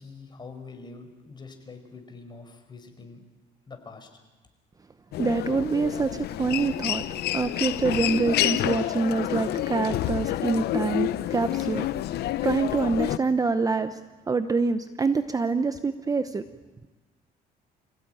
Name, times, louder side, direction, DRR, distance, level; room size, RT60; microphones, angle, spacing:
voice 1, 0.0-3.2 3.7-4.2, left 4 dB, 25° left, 6 dB, 4.8 m, -44 dB
Human voice, 5.1-13.2, left 14 dB, 75° left, 0.8 m, -28 dB
voice 2, 5.2-7.1 7.3-11.9 12.2-14.0 14.3-16.4, right 4 dB, 20° right, 10 dB, 0.8 m, -26 dB
26.5 x 17.0 x 9.2 m, 1.3 s
cardioid pair, 110°, 17 cm